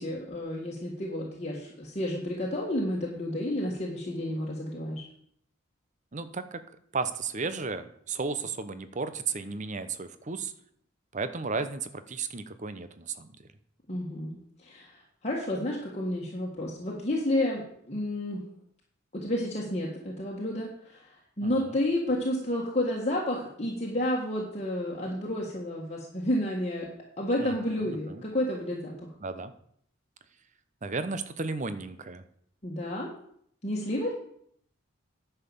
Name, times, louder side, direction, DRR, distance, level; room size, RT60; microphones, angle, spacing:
voice 1, 0.0-5.0 13.9-14.3 14.6-18.4 19.1-21.1 21.4-26.9 27.2-29.1 32.6-33.1 33.6-34.1, left 1 dB, 35° left, -3 dB, 1.6 m, -31 dB
voice 2, 6.1-6.6 6.9-10.5 11.1-13.4 21.4-21.7 27.4-28.2 29.2-29.5 30.8-32.2, right 4 dB, 35° right, 11 dB, 0.8 m, -34 dB
10.0 x 5.7 x 7.1 m, 0.68 s
head